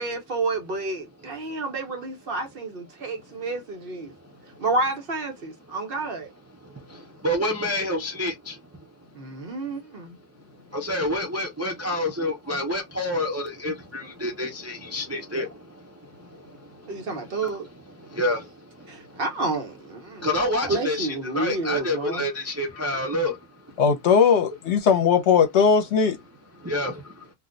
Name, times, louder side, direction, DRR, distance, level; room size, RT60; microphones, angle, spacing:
voice 1, 0.0-4.1 4.6-6.3 9.1-10.2 16.9-17.7 18.9-22.3, right 3 dB, 55° right, 0.9 m, -30 dB
voice 2, 7.2-8.5 10.7-15.5 18.1-18.4 20.2-23.3 26.6-27.0, left 1 dB, 20° right, 0.4 m, -27 dB
voice 3, 23.8-26.2, left 6 dB, 75° left, 1.0 m, -19 dB
2.5 x 2.2 x 3.7 m
omnidirectional pair, 1.2 m